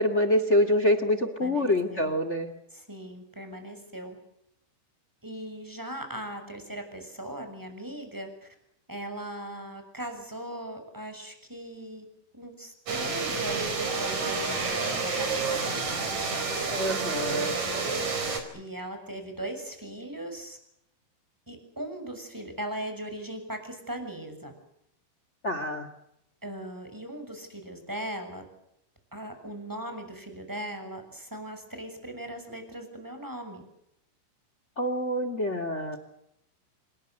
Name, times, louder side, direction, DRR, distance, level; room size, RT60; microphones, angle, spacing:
voice 1, 0.0-2.5 16.7-17.5 25.4-25.9 34.8-36.0, left 1 dB, 60° left, 12 dB, 0.7 m, -26 dB
voice 2, 1.2-2.2 2.7-4.2 5.2-8.5 8.9-12.0 12.3-16.2 17.3-20.6 21.5-24.5 26.4-28.5 29.1-33.6, right 1 dB, 5° right, 7 dB, 6.4 m, -39 dB
sound 1, 12.9-18.4, right 4 dB, 40° right, 5.5 m, -29 dB
28.5 x 22.0 x 8.0 m, 0.77 s
omnidirectional pair, 5.2 m